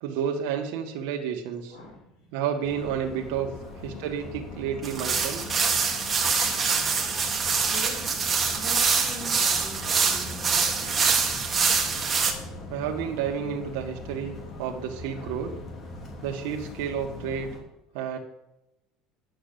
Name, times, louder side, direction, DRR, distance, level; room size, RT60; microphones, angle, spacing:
voice 1, 0.0-1.8 2.3-3.5 3.8-5.4 12.7-15.5 16.2-17.5 17.9-18.2, right 8 dB, 80° right, 2 dB, 1.5 m, -30 dB
voice 2, 1.7-2.3 3.4-3.5 3.9-4.1 7.7-8.1 8.5-11.0 12.3-12.5 17.9-18.2, left 1 dB, 80° left, -1 dB, 5.3 m, -43 dB
sound 1, 2.6-17.6, left 2 dB, 35° left, 2.7 m, -41 dB
sound 2, 4.8-12.3, right 5 dB, 20° right, 1.7 m, -25 dB
10.5 x 7.1 x 6.8 m, 0.87 s
cardioid pair, 145°, 0 cm